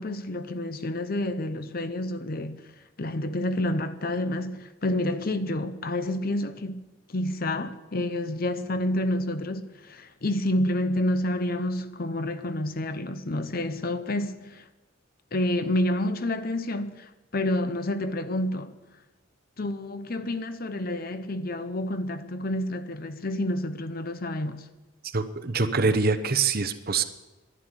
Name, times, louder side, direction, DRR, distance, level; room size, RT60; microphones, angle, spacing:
voice 1, 0.0-2.6 3.0-6.8 7.1-14.6 15.3-18.7 19.6-24.6, left 1 dB, 45° left, 0.8 m, -29 dB
voice 2, 25.1-27.0, right 4 dB, 45° right, 0.9 m, -24 dB
11.5 x 11.0 x 9.8 m
head